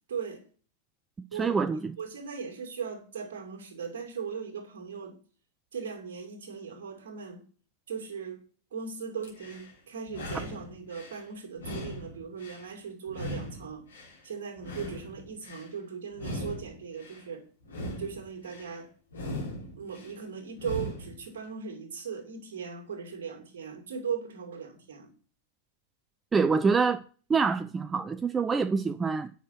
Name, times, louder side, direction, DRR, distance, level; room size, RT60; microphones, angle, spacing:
voice 1, 0.1-0.4 1.3-1.7 2.0-5.2 5.7-7.4 7.9-8.4 8.7-13.8 14.2-17.4 18.0-18.9 19.7-25.1, right 6 dB, 60° right, 2.7 m, -38 dB
voice 2, 1.3-2.0 26.3-27.0 27.3-29.3, right 5 dB, 15° right, 0.4 m, -26 dB
sound 1, 9.2-9.7 10.1-11.2 11.6-12.7 13.1-14.2 14.6-15.7 16.1-17.2 17.6-18.7 19.1-20.1 20.5-21.2, equal, 70° left, 3.5 m, -39 dB
9.4 x 6.1 x 5.8 m
figure-of-eight pair, 90°, 0 cm